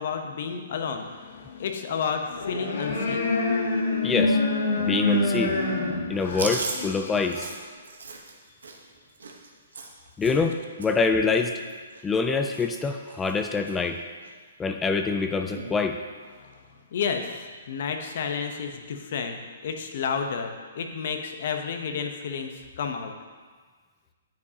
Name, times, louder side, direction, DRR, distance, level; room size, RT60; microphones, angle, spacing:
voice 1, 0.0-3.3 10.2-10.5 16.4-23.1, left 6 dB, 55° left, 5 dB, 0.9 m, -31 dB
sound 1, 2.3-7.5, left 3 dB, 80° left, 1.4 m, -26 dB
voice 2, 4.0-4.4 4.8-5.6 6.1-7.5 10.2-11.6 12.0-14.0 14.6-16.0, left 4 dB, 10° left, 6 dB, 0.3 m, -25 dB
Chewing mastication, 6.3-10.5 10.8-11.1 11.4-12.3 12.5-12.8 13.1-13.8 14.2-14.3 15.4-15.8, right 3 dB, 90° right, 1.1 m, -37 dB
9.1 x 7.5 x 2.9 m, 1.5 s
hypercardioid pair, 150°, 0 cm